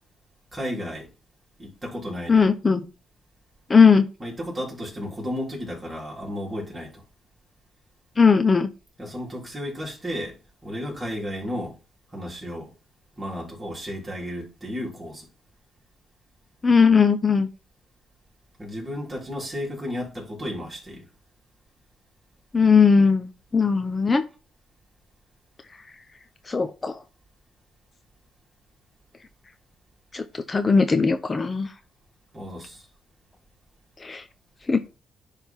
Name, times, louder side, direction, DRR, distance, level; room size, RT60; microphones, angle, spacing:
voice 1, 0.5-1.1 1.6-2.5 4.2-7.0 9.0-10.4 10.6-11.8 12.1-12.7 13.2-15.3 18.6-21.1 32.3-32.9, equal, 25° right, 3.8 m, -33 dB
voice 2, 2.3-2.8 3.7-4.1 8.2-8.7 16.6-17.5 22.5-24.2 26.5-26.9 30.1-31.7 34.0-34.2 34.7-34.8, left 5 dB, 25° left, 0.7 m, -18 dB
10.5 x 3.5 x 4.5 m
cardioid pair, 90°, 0 cm